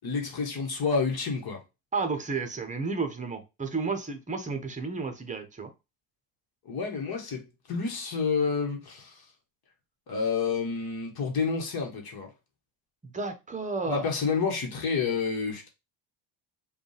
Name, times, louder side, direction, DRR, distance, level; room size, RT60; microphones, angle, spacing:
voice 1, 0.0-1.6 6.6-9.2 10.1-12.3 13.9-15.7, left 5 dB, 50° left, 1.3 m, -29 dB
voice 2, 1.9-5.7 13.0-14.1, right 4 dB, 15° right, 0.8 m, -32 dB
5.0 x 2.4 x 3.3 m
cardioid pair, 110°, 47 cm